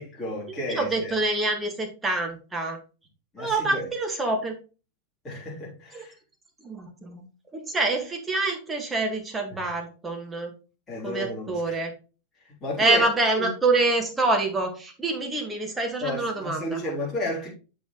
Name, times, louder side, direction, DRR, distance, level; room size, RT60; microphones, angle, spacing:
voice 1, 0.0-1.2 3.3-3.9 5.2-6.1 9.6-9.7 10.9-11.8 12.4-13.1 13.3-13.5 16.0-17.5, left 1 dB, 20° left, 3.4 m, -32 dB
voice 2, 0.8-2.8 3.4-4.5 5.9-6.0 6.6-7.2 7.5-10.5 11.0-11.9 12.8-16.8, right 2 dB, 15° right, 1.9 m, -26 dB
8.2 x 6.0 x 3.2 m
figure-of-eight pair, 90°, 0 cm